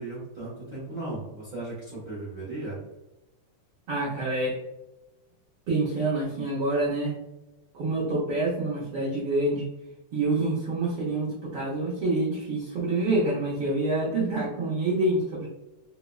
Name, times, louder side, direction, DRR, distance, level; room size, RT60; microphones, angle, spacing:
voice 1, 0.0-2.8, right 2 dB, 55° right, -8 dB, 1.0 m, -36 dB
voice 2, 3.9-4.6 5.7-7.2 7.7-9.7 10.1-15.5, right 2 dB, 85° right, -7 dB, 1.1 m, -27 dB
4.9 x 2.0 x 2.2 m, 0.97 s
omnidirectional pair, 3.3 m